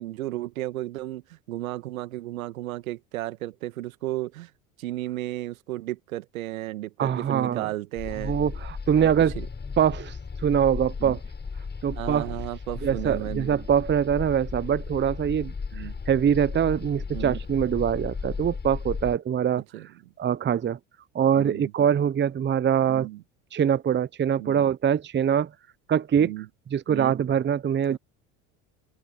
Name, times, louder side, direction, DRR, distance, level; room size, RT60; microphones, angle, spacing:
voice 1, 0.0-4.5 4.8-8.4 9.0-9.5 11.0-11.2 11.9-13.5 15.7-15.9 17.1-17.4 19.7-19.9 21.4-21.7 22.9-23.2 24.4-24.6 26.2-26.5 26.9-27.2 27.9-28.0, right 16 dB, 80° right, 1.8 m, -34 dB
voice 2, 7.0-7.7 8.2-9.4 9.8-10.2 10.4-11.2 11.8-12.4 12.8-19.6 20.2-20.8 21.1-23.1 23.5-25.5 25.9-26.3 26.7-28.0, right 8 dB, 25° right, 0.9 m, -23 dB
sound 1, 8.0-19.2, left 5 dB, 25° left, 6.9 m, -35 dB
open air
hypercardioid pair, 70°, 41 cm